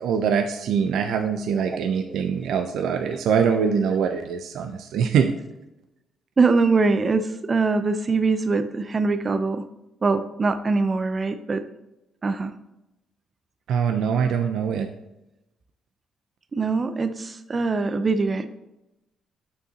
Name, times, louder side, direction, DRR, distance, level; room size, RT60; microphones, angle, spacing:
voice 1, 0.0-5.3 13.7-14.9, right 7 dB, 75° right, 6 dB, 0.5 m, -23 dB
voice 2, 1.7-2.3 2.8-2.9 6.4-9.6 10.0-11.6 12.2-12.5 16.5-18.5, right 4 dB, 35° right, 10 dB, 0.6 m, -23 dB
8.8 x 6.8 x 2.8 m, 0.94 s
cardioid pair, 90°, 0 cm